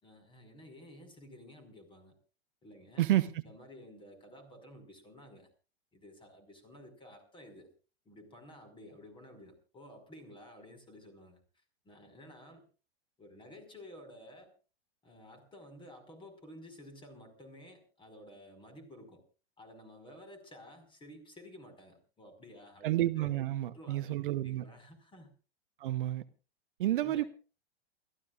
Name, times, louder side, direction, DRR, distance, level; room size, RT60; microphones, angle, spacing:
voice 1, 0.0-2.1 2.6-3.0 3.4-5.5 5.9-7.7 8.1-11.4 11.9-12.6 13.2-14.5 15.0-19.2 19.6-25.3 27.0-27.3, left 1 dB, 15° left, 5.3 m, -53 dB
voice 2, 3.0-3.4 22.8-24.6 25.8-26.2 26.8-27.2, right 14 dB, 55° right, 0.9 m, -30 dB
29.0 x 14.5 x 2.5 m
figure-of-eight pair, 105°, 31 cm